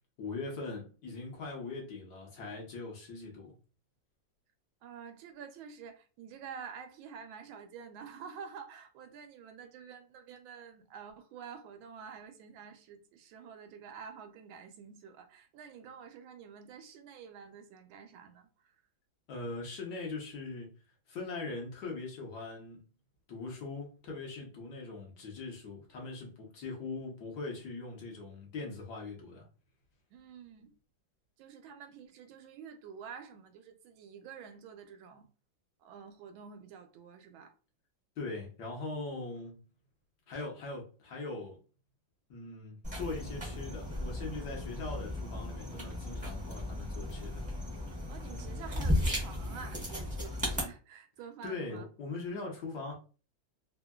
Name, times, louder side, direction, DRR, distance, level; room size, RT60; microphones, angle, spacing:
voice 1, 0.2-3.5 19.3-20.7 21.1-22.8 23.3-29.4 38.2-39.6 40.3-41.6 42.3-47.5 51.4-52.9, left 3 dB, 65° left, 1.3 m, -41 dB
voice 2, 4.8-18.7 30.1-30.8 31.4-35.3 35.8-37.5 48.1-51.9, right 6 dB, 85° right, 1.4 m, -49 dB
sound 1, 42.8-50.6, left 1 dB, 10° right, 0.4 m, -35 dB
3.5 x 2.1 x 2.2 m
omnidirectional pair, 2.1 m